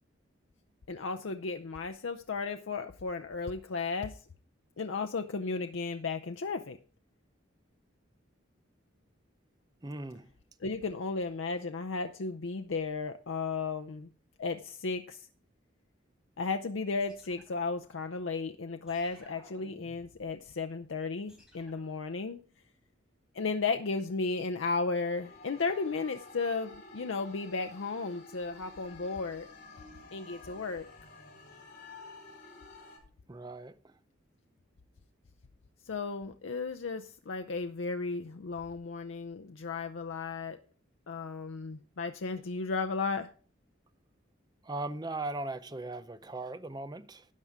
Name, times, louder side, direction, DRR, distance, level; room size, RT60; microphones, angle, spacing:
voice 1, 0.9-4.2 4.8-6.8 10.6-14.1 14.4-15.3 16.4-22.4 23.3-29.5 30.1-30.9 35.9-40.6 41.1-43.3, left 4 dB, 80° left, 0.6 m, -34 dB
voice 2, 9.8-10.3 33.3-33.9 44.6-47.3, right 2 dB, 20° right, 0.6 m, -38 dB
sound 1, 17.0-18.3 18.9-20.4 21.3-22.0, equal, 5° right, 3.7 m, -58 dB
sound 2, 25.0-33.0, left 3 dB, 40° left, 4.5 m, -51 dB
13.0 x 9.3 x 3.6 m
head